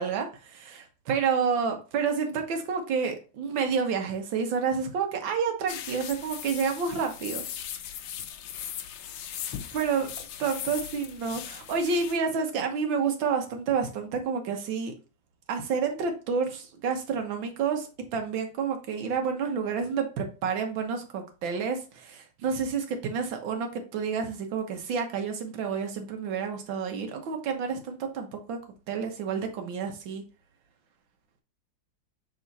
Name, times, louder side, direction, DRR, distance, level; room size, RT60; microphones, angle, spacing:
voice 1, 0.0-7.4 9.7-10.1 10.4-14.9 15.5-28.6 28.9-30.2, right 6 dB, 85° right, 4 dB, 1.8 m, -29 dB
sound 1, 5.7-12.2, left 10 dB, 80° left, 1.4 m, -39 dB
6.3 x 3.7 x 4.0 m, 0.34 s
omnidirectional pair, 2.0 m